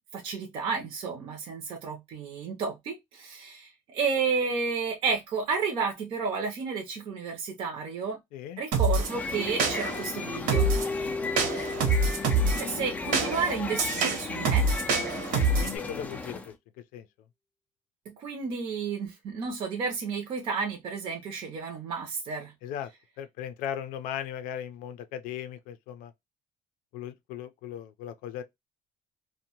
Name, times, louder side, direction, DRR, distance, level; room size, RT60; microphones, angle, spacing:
voice 1, 0.0-8.2 8.6-10.7 12.1-12.3 12.6-14.7 18.1-22.5, right 5 dB, 40° right, 0.6 m, -32 dB
voice 2, 8.3-8.6 15.3-16.5 16.9-17.1 22.6-22.9 23.2-26.1 26.9-28.4, left 10 dB, 75° left, 0.5 m, -37 dB
sound 1, 8.7-9.1 9.6-10.0 10.5-10.9 11.4-12.6 13.1-15.8, right 3 dB, 70° right, 0.9 m, -25 dB
sound 2, 8.9-16.5, left 3 dB, 10° left, 0.3 m, -35 dB
Keyboard (musical), 10.5-13.8, left 3 dB, 30° left, 0.7 m, -36 dB
2.7 x 2.1 x 2.8 m
cardioid pair, 175°, 14 cm